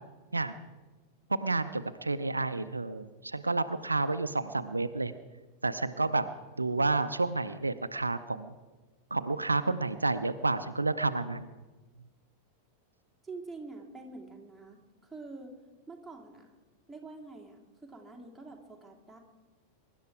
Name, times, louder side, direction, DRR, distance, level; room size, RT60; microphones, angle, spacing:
voice 1, 1.3-5.1 5.6-6.3 6.6-8.5 9.1-11.5, right 3 dB, 80° right, 11 dB, 0.6 m, -30 dB
voice 2, 13.2-15.5 15.9-16.5 16.9-19.2, right 3 dB, 5° right, -2 dB, 2.7 m, -46 dB
23.0 x 11.5 x 4.8 m, 1.2 s
figure-of-eight pair, 90°, 0 cm